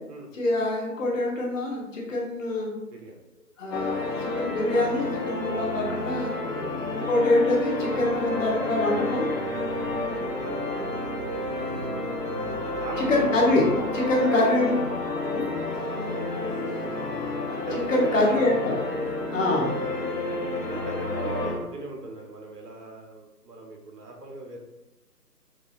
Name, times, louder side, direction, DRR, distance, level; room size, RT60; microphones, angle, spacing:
voice 1, 0.3-2.7 3.6-6.3 6.9-9.3 13.0-13.7 13.9-14.8 15.2-15.5 17.7-18.8 19.3-19.7, left 2 dB, 55° left, -2 dB, 1.2 m, -25 dB
sound 1, 3.7-21.5, left 2 dB, 90° left, 1.2 m, -30 dB
voice 2, 6.5-6.9 10.2-12.3 12.6-13.4 14.2-14.3 15.5-15.6 16.0-16.1 17.7-18.7 20.7-24.6, right 2 dB, 75° right, 1 dB, 1.1 m, -39 dB
4.7 x 2.7 x 2.4 m, 0.97 s
hypercardioid pair, 155°, 48 cm